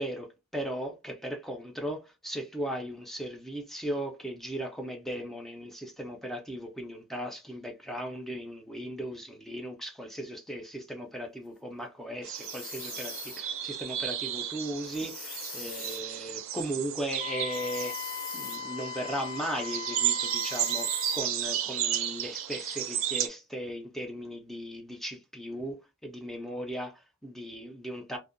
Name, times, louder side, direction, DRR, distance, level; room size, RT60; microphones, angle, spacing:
voice 1, 0.0-17.9 18.3-28.2, equal, ahead, 0.4 m, -37 dB
sound 1, 12.2-23.3, right 11 dB, 80° right, 0.4 m, -33 dB
sound 2, 12.4-13.4 14.8-16.0 17.5-18.6 20.3-21.2, left 6 dB, 45° left, 0.7 m, -43 dB
Wind instrument woodwind instrument, 17.2-21.3, left 8 dB, 85° left, 0.5 m, -39 dB
2.6 x 2.1 x 2.5 m
head